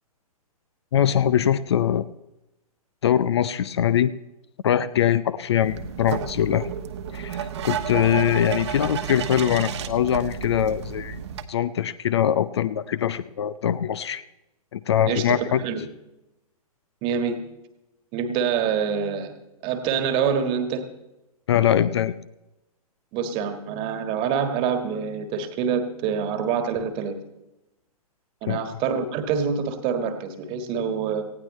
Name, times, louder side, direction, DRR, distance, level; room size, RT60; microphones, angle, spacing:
voice 1, 0.9-2.1 3.0-4.1 4.6-6.7 7.1-11.2 11.5-14.2 14.7-15.6 21.5-22.2 28.5-28.6, left 10 dB, 45° left, 17 dB, 0.5 m, -22 dB
sound 1, 5.6-11.4, right 8 dB, 45° right, 1.2 m, -32 dB
voice 2, 15.1-15.8 17.0-17.4 18.1-19.3 19.6-20.8 23.1-27.2 28.4-31.2, right 7 dB, 25° right, 8 dB, 1.6 m, -26 dB
19.0 x 16.0 x 3.1 m, 0.95 s
figure-of-eight pair, 120°, 19 cm